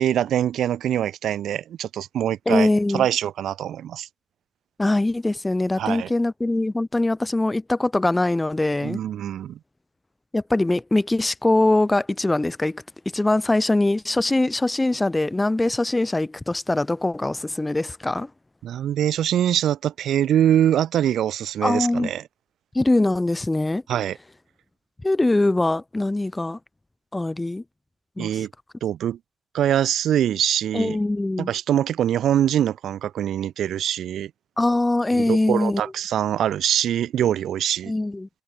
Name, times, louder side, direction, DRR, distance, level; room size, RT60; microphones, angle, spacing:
voice 1, 0.0-4.1 5.8-6.1 8.8-9.6 18.6-22.2 23.9-24.2 28.2-28.5 28.8-29.2 29.5-31.0 31.4-34.3 35.1-37.9, right 10 dB, 70° right, 1.7 m, -23 dB
voice 2, 2.5-3.0 4.8-9.0 10.3-12.8 13.1-18.3 21.6-22.1 22.7-23.8 25.0-26.6 27.1-27.6 28.2-28.5 30.7-31.5 34.6-35.8 37.9-38.3, left 2 dB, 15° left, 1.6 m, -22 dB
cardioid pair, 90°, 0 cm